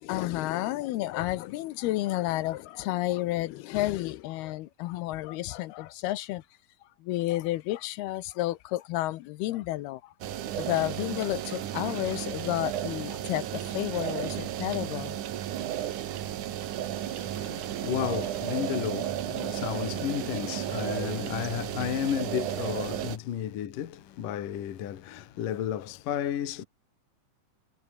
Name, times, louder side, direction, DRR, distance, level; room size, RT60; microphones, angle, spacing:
voice 1, 0.0-6.4 7.0-10.1 10.6-15.2, left 16 dB, 75° left, 2.6 m, -31 dB
sound 1, 10.2-23.2, right 11 dB, 60° right, 2.4 m, -33 dB
voice 2, 16.9-26.7, left 10 dB, 55° left, 3.1 m, -33 dB
omnidirectional pair, 4.9 m